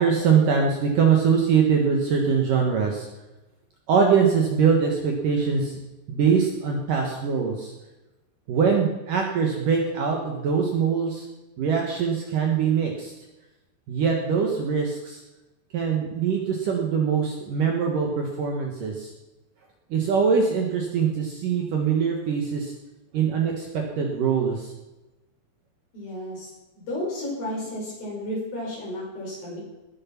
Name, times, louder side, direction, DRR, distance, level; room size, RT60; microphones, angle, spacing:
voice 1, 0.0-3.1 3.9-5.8 6.1-7.7 8.5-11.3 11.6-13.1 13.9-15.2 15.7-19.1 19.9-22.7 23.1-24.7, right 6 dB, 60° right, 1 dB, 2.5 m, -23 dB
voice 2, 25.9-29.6, left 1 dB, 55° left, -4 dB, 7.1 m, -33 dB
19.0 x 7.7 x 5.9 m, 1.1 s
omnidirectional pair, 5.1 m